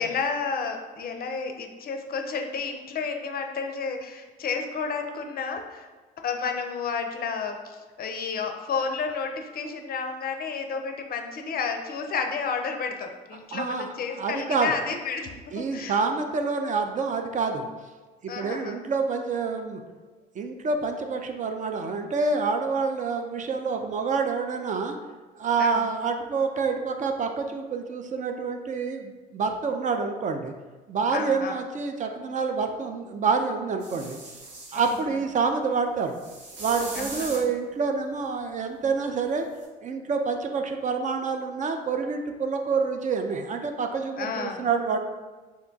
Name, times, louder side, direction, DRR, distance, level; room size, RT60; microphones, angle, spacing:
voice 1, 0.0-5.9 6.2-16.0 18.3-18.8 25.6-25.9 31.1-31.6 34.7-35.0 36.9-37.5 44.2-44.7, left 5 dB, 45° left, 5 dB, 0.5 m, -31 dB
voice 2, 13.5-14.7 15.5-17.7 18.2-19.8 20.4-25.0 25.4-30.5 30.9-34.2 34.7-36.2 36.6-39.5 39.8-45.0, right 4 dB, 40° right, 5 dB, 0.4 m, -27 dB
sound 1, 33.8-35.0 36.1-37.5 39.6-39.7, right 2 dB, 60° right, 0.9 m, -39 dB
2.8 x 2.2 x 3.8 m, 1.3 s
hypercardioid pair, 60°, 21 cm